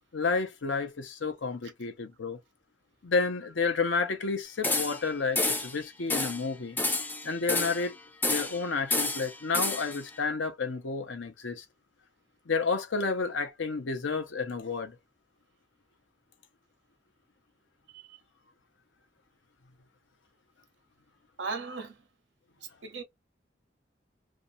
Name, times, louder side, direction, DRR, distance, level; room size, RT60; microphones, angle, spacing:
voice 1, 0.1-2.4 3.0-6.8 7.2-8.0 8.3-11.6 12.5-15.0, left 4 dB, 90° left, 0.7 m, -30 dB
sound 1, 4.6-5.1 5.3-5.7 6.1-6.4 6.8-7.9 8.2-8.6 8.9-10.0, left 2 dB, 10° left, 0.4 m, -29 dB
voice 2, 17.9-18.2 21.4-22.0 22.8-23.0, right 4 dB, 80° right, 0.8 m, -37 dB
2.6 x 2.2 x 2.6 m
head